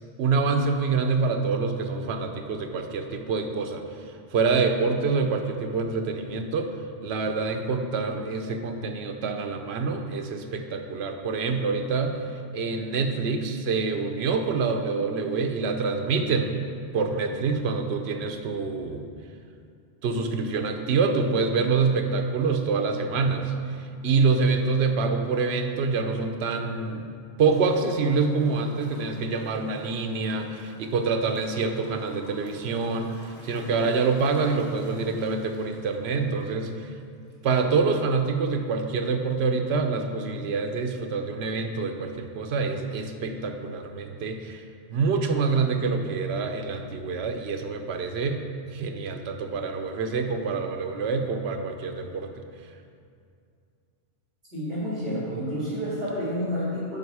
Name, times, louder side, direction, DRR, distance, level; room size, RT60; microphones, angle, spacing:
voice 1, 0.2-3.8 4.3-6.7 7.0-16.5 16.9-19.1 20.0-27.1 27.4-36.9 37.4-48.4 48.7-52.3, right 4 dB, 75° right, 5 dB, 0.9 m, -26 dB
Gurgling / Toilet flush, 27.4-36.8 37.3-37.4, left 1 dB, 10° left, 1.3 m, -47 dB
voice 2, 54.5-57.0, equal, 45° right, -11 dB, 2.2 m, -29 dB
7.7 x 5.3 x 4.7 m, 2.4 s
omnidirectional pair, 1.1 m